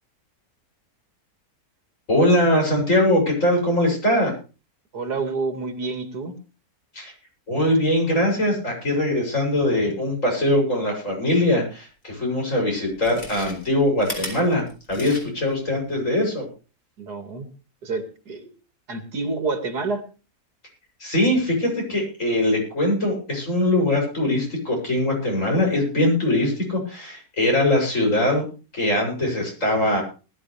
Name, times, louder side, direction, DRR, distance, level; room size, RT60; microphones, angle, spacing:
voice 1, 2.1-4.3 6.9-7.1 7.5-16.5 21.0-28.5 28.7-30.0, left 1 dB, 55° left, 0 dB, 7.9 m, -21 dB
voice 2, 4.9-6.3 17.0-17.5 17.8-18.5 18.9-20.0, right 3 dB, 90° right, 6 dB, 2.8 m, -28 dB
Chewing mastication, 12.9-15.5 15.9-16.0, left 1 dB, 30° left, 5.1 m, -36 dB
20.0 x 12.5 x 3.4 m, 0.34 s
omnidirectional pair, 1.6 m